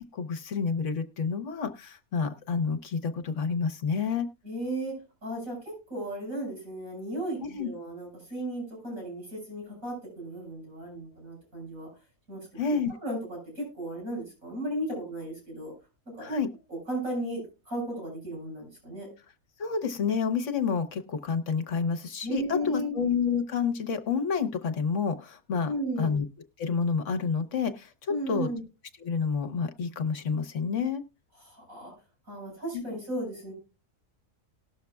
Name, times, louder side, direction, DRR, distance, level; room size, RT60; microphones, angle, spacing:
voice 1, 0.1-4.3 7.4-7.7 12.6-12.9 16.2-16.5 19.6-25.7 26.0-26.2 26.6-28.5 29.0-31.0 32.7-32.8, left 5 dB, 65° left, 9 dB, 1.3 m, -29 dB
voice 2, 4.4-4.9 5.2-11.9 12.3-12.8 13.0-15.7 16.2-16.3 16.7-19.1 22.2-23.0 25.6-26.2 28.1-28.6 31.4-31.9 32.3-33.5, right 1 dB, 75° right, -2 dB, 7.0 m, -35 dB
19.0 x 6.5 x 2.3 m, 0.28 s
omnidirectional pair, 1.4 m